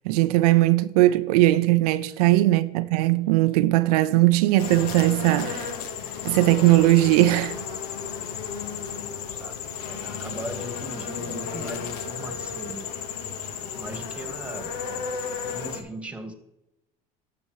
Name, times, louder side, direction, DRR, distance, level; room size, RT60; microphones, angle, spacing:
voice 1, 0.1-5.7 6.2-7.6, right 17 dB, 90° right, 0.5 m, -19 dB
sound 1, 4.6-15.8, left 6 dB, 90° left, 1.0 m, -33 dB
voice 2, 9.4-12.9 13.6-15.0 15.5-16.3, right 1 dB, 5° right, 1.5 m, -39 dB
12.0 x 7.1 x 3.1 m
supercardioid pair, 90°, 19 cm